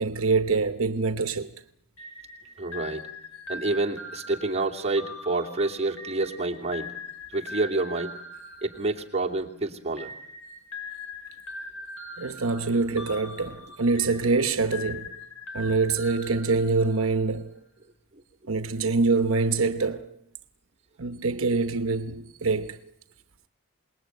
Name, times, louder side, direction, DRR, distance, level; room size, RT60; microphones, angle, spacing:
voice 1, 0.0-1.6 12.2-15.1 15.5-17.6 18.5-20.2 21.0-22.8, right 3 dB, 75° right, 1.0 m, -25 dB
sound 1, 2.0-9.4 10.0-17.2, left 2 dB, 80° left, 5.7 m, -42 dB
voice 2, 2.6-3.0 3.5-6.9 7.3-8.1 8.6-10.1, right 2 dB, 30° right, 2.7 m, -28 dB
27.5 x 20.0 x 9.2 m
head